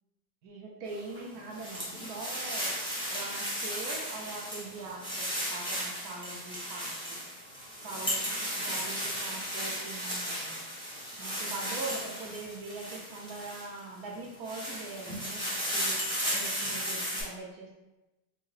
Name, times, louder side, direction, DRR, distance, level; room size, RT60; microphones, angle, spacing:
voice 1, 0.4-2.7 3.1-7.2 7.8-10.6 11.2-16.0 16.3-17.7, right 3 dB, 70° right, -2 dB, 0.9 m, -42 dB
sound 1, 1.0-13.8 14.2-17.2, equal, 10° left, 0.3 m, -35 dB
4.5 x 2.1 x 3.1 m, 1.0 s
omnidirectional pair, 2.0 m